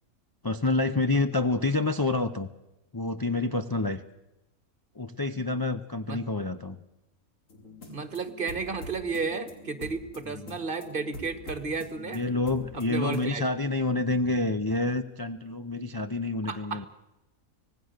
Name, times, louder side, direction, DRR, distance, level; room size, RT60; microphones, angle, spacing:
voice 1, 0.4-2.5 2.9-4.0 5.0-6.8 10.3-10.5 12.1-16.9, left 2 dB, 30° left, 6 dB, 0.4 m, -28 dB
sound 1, 7.5-13.5, left 1 dB, 65° left, 3.4 m, -46 dB
voice 2, 7.9-12.2 12.7-13.4 16.5-16.8, right 4 dB, 40° right, 10 dB, 1.5 m, -33 dB
25.0 x 18.0 x 6.6 m, 0.94 s
omnidirectional pair, 1.5 m